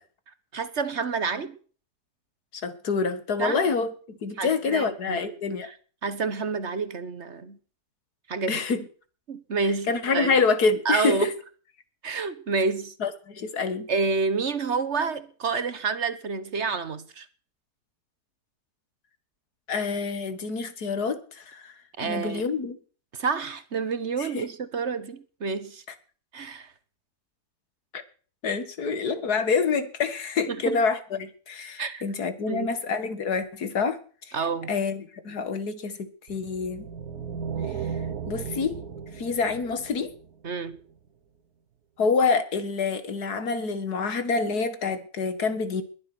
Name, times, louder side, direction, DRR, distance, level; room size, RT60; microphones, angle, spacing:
voice 1, 0.5-1.6 3.4-3.6 4.4-5.4 6.0-7.6 8.3-8.6 9.3-10.3 10.8-11.3 12.0-12.9 13.9-17.3 22.0-22.5 23.1-25.8 26.3-26.7 30.5-30.8 31.8-32.0 32.4-32.7 34.3-34.7 40.4-40.8, right 4 dB, 50° right, 1.4 m, -29 dB
voice 2, 2.5-5.7 8.5-8.9 9.6-11.3 13.0-13.9 19.7-21.7 22.0-22.8 24.2-24.5 27.9-28.0 28.4-34.0 34.3-34.4 34.7-36.9 38.3-38.8 39.1-40.1 42.0-45.8, left 4 dB, 90° left, 2.2 m, -27 dB
sound 1, 36.3-40.7, right 7 dB, 75° right, 1.7 m, -35 dB
21.0 x 11.0 x 6.1 m
omnidirectional pair, 1.6 m